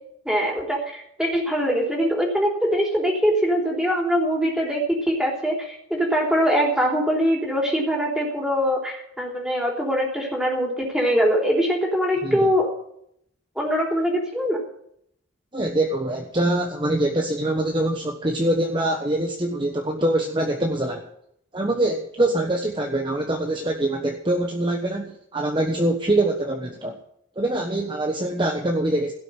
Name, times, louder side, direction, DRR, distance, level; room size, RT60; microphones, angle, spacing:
voice 1, 0.3-12.7 13.6-14.6, equal, 5° right, -2 dB, 3.5 m, -22 dB
voice 2, 15.5-21.1 21.5-27.0 27.4-29.1, right 1 dB, 25° right, 2 dB, 1.2 m, -24 dB
16.5 x 6.4 x 9.9 m, 0.71 s
head